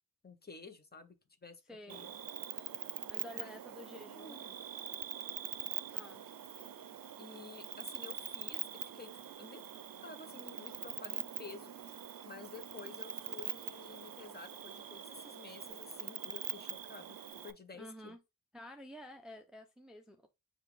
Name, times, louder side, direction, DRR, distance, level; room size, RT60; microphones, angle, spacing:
voice 1, 0.2-1.1 1.4-1.6 1.9-2.1 3.3-4.4 7.2-8.7 8.9-9.1 9.4-9.7 10.0-18.2, left 4 dB, 25° left, 0.7 m, -52 dB
voice 2, 1.7-2.2 3.1-4.6 5.9-6.2 17.8-18.2 18.5-20.3, left 1 dB, ahead, 0.4 m, -51 dB
Cricket, 1.9-17.5, right 9 dB, 65° right, 0.5 m, -44 dB
7.0 x 2.4 x 3.2 m
wide cardioid pair, 155°, 37 cm